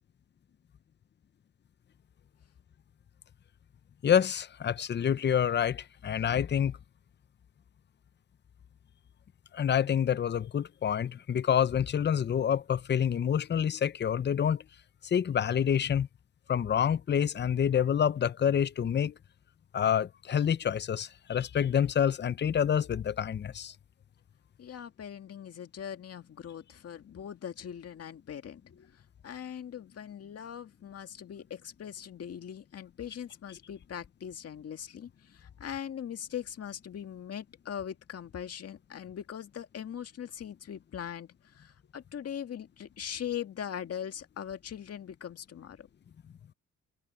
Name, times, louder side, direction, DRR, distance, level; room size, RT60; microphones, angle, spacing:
voice 1, 4.0-6.8 9.5-14.6 15.0-16.1 16.5-19.1 19.7-23.7, left 8 dB, 35° left, 0.7 m, -27 dB
voice 2, 24.6-28.9 29.2-45.9, left 9 dB, 55° left, 2.0 m, -41 dB
cardioid pair, 90°, 30 cm